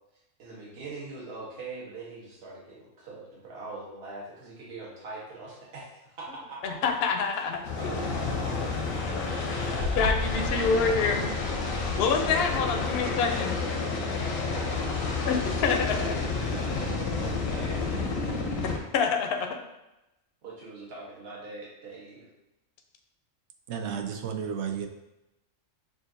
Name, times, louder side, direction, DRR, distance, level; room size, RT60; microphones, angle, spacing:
voice 1, 0.4-6.7 7.8-9.2 9.6-9.8 14.4-14.8 15.0-15.3 15.9-18.4 20.4-22.3, right 3 dB, 50° right, -5 dB, 1.2 m, -42 dB
voice 2, 6.6-8.0 10.0-11.3 12.0-13.5 15.3-16.2 18.6-19.6, left 5 dB, 60° left, 4 dB, 0.7 m, -27 dB
sound 1, 7.6-18.8, left 4 dB, 85° left, 1.1 m, -30 dB
voice 3, 23.7-24.9, right 7 dB, 70° right, 5 dB, 0.8 m, -32 dB
6.2 x 2.5 x 2.6 m, 0.92 s
omnidirectional pair, 1.3 m